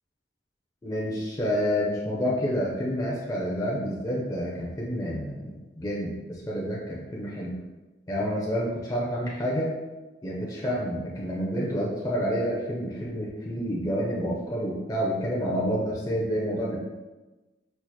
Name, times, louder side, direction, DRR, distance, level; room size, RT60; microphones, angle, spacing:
voice 1, 0.8-7.6 8.1-9.7 10.2-16.8, equal, 20° left, -5 dB, 0.5 m, -29 dB
4.5 x 2.8 x 2.2 m, 1.1 s
head